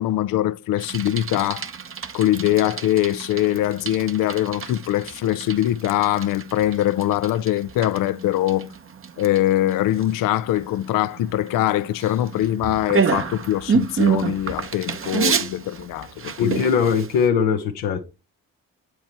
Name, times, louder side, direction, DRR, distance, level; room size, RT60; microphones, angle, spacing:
voice 1, 0.0-1.7 2.1-8.7 9.2-16.6, left 13 dB, 60° left, 0.5 m, -22 dB
Bicycle, 0.8-17.3, right 6 dB, 35° right, 0.9 m, -29 dB
voice 2, 16.4-18.0, left 6 dB, 80° left, 0.9 m, -20 dB
7.4 x 4.6 x 3.1 m
hypercardioid pair, 50°, 38 cm